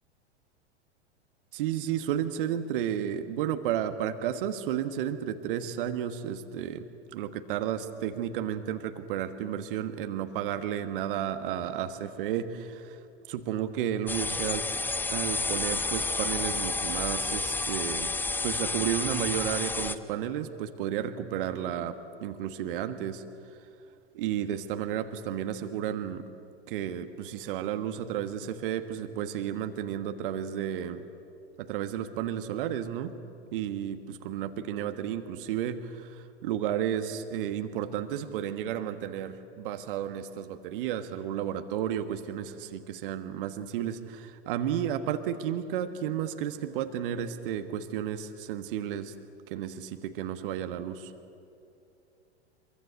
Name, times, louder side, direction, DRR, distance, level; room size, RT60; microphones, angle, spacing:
voice 1, 1.5-13.0 13.3-14.7 15.1-18.1 18.4-23.2 23.5-23.6 24.1-26.3 26.7-31.1 31.6-33.2 33.5-49.1 49.5-51.1, right 10 dB, 50° right, 9 dB, 1.5 m, -32 dB
sound 1, 14.1-20.0, left 3 dB, 5° left, 0.6 m, -30 dB
25.0 x 23.5 x 8.1 m, 2.7 s
figure-of-eight pair, 95°, 34 cm